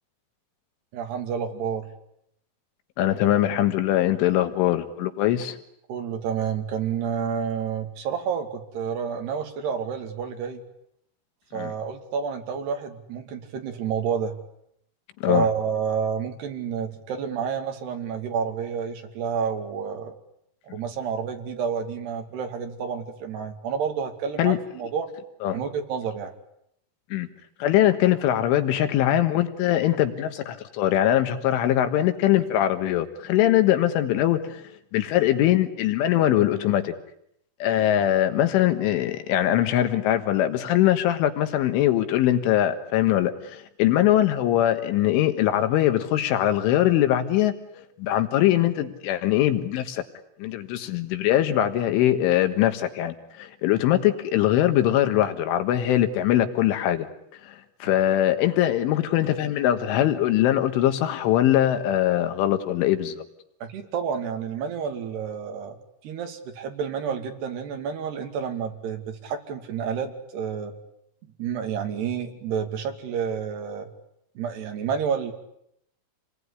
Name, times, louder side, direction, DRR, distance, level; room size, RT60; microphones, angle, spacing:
voice 1, 0.9-1.9 5.9-10.6 11.5-14.3 15.3-20.1 20.7-25.1 25.5-26.3 63.6-65.8 66.0-70.7 71.4-73.9 74.4-75.3, right 7 dB, 60° right, 5 dB, 4.4 m, -29 dB
voice 2, 3.0-5.6 11.5-11.7 15.2-15.5 24.4-24.6 25.4-25.6 27.1-27.3 27.6-34.6 34.9-36.9 37.6-50.0 50.4-57.1 57.4-57.6 57.8-63.2, left 12 dB, 85° left, 8 dB, 4.0 m, -22 dB
28.5 x 20.5 x 9.8 m, 0.75 s
omnidirectional pair, 5.5 m